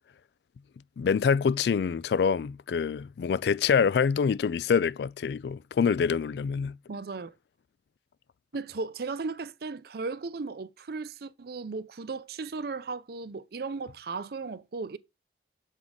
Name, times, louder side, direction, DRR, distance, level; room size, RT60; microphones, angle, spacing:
voice 1, 1.0-6.8, left 6 dB, 65° left, 0.3 m, -26 dB
voice 2, 6.9-7.3 8.5-15.0, right 4 dB, 60° right, 0.5 m, -36 dB
7.3 x 4.8 x 4.0 m
head